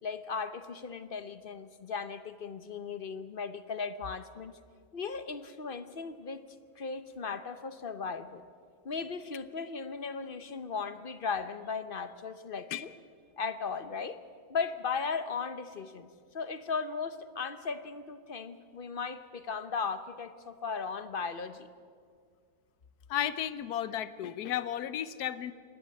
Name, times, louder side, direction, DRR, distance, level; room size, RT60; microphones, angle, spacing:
voice 1, 0.0-4.5 4.9-6.4 6.8-8.4 8.8-12.9 13.4-14.2 14.5-16.1 16.3-21.7, left 5 dB, 45° left, 11 dB, 0.8 m, -37 dB
voice 2, 23.1-25.5, left 11 dB, 90° left, 14 dB, 1.3 m, -33 dB
26.5 x 11.0 x 9.3 m, 2.1 s
omnidirectional pair, 1.6 m